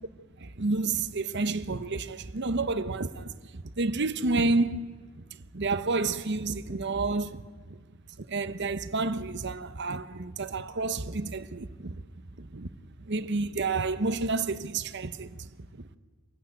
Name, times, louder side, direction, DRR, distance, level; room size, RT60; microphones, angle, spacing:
voice 1, 0.4-5.2 5.5-7.8 8.2-11.9 12.4-12.7 13.0-15.5, right 3 dB, 55° right, 1.0 m, -30 dB
25.5 x 15.0 x 9.2 m
head